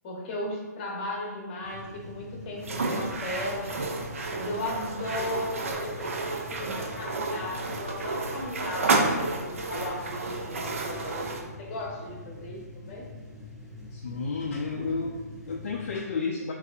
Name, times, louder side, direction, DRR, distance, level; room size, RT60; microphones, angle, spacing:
voice 1, 0.0-3.8 4.3-13.0, left 1 dB, 25° left, -2 dB, 0.9 m, -36 dB
sound 1, 1.6-16.0, left 2 dB, 5° right, 0.6 m, -45 dB
sound 2, 2.6-11.5, right 3 dB, 50° right, 0.5 m, -31 dB
voice 2, 13.9-16.5, left 4 dB, 45° left, 0 dB, 0.4 m, -31 dB
5.1 x 2.7 x 2.4 m, 1.3 s
figure-of-eight pair, 135°, 9 cm